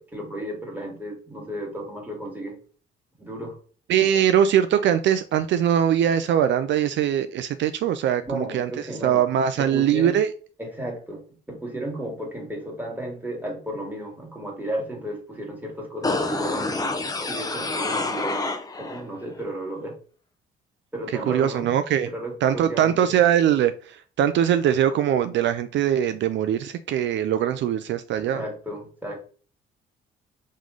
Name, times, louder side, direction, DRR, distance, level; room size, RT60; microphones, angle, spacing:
voice 1, 0.0-2.6 3.2-3.6 8.2-10.2 10.6-11.2 11.5-16.9 17.3-18.5 18.8-19.9 20.9-21.7 22.1-23.1 28.2-29.2, right 1 dB, 10° right, -1 dB, 2.0 m, -34 dB
voice 2, 3.9-8.7 9.0-10.3 21.3-22.1 22.4-28.4, right 9 dB, 70° right, 10 dB, 0.4 m, -21 dB
sound 1, 16.0-19.0 19.4-19.5, left 2 dB, 20° left, 0.7 m, -27 dB
3.7 x 3.1 x 3.7 m, 0.39 s
cardioid pair, 90°, 20 cm